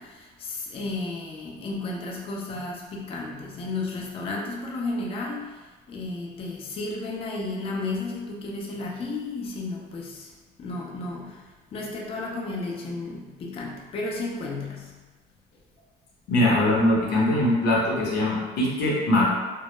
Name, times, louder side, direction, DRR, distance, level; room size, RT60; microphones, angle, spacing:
voice 1, 0.0-5.6 5.9-10.3 10.6-11.4 11.7-14.9, left 2 dB, 35° left, -2 dB, 0.4 m, -33 dB
voice 2, 16.3-19.3, left 1 dB, 90° left, -4 dB, 0.7 m, -22 dB
2.1 x 2.0 x 3.0 m, 1.3 s
cardioid pair, 110°, 17 cm